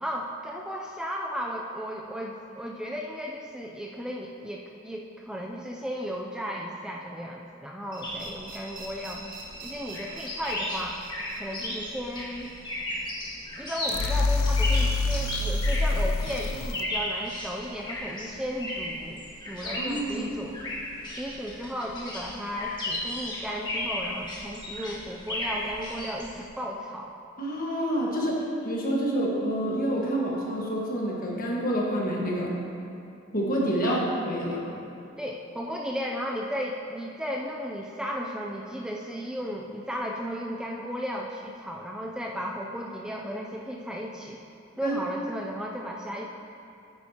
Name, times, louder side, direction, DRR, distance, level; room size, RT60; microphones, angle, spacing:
voice 1, 0.0-9.2 9.6-11.0 11.4-12.5 13.6-19.2 19.5-20.6 21.1-27.1 33.8-34.1 35.2-44.4 44.8-46.3, equal, 5° right, -1 dB, 0.4 m, -35 dB
sound 1, 7.9-14.7, right 2 dB, 45° right, 1.0 m, -46 dB
sound 2, 8.0-26.5, left 1 dB, 20° left, 1.6 m, -35 dB
sound 3, 13.9-16.8, left 3 dB, 85° left, 0.4 m, -25 dB
voice 2, 19.6-20.3 27.4-32.6 33.3-34.6 44.8-45.0, equal, 45° left, -3 dB, 1.5 m, -28 dB
9.5 x 9.2 x 2.9 m, 2.6 s
head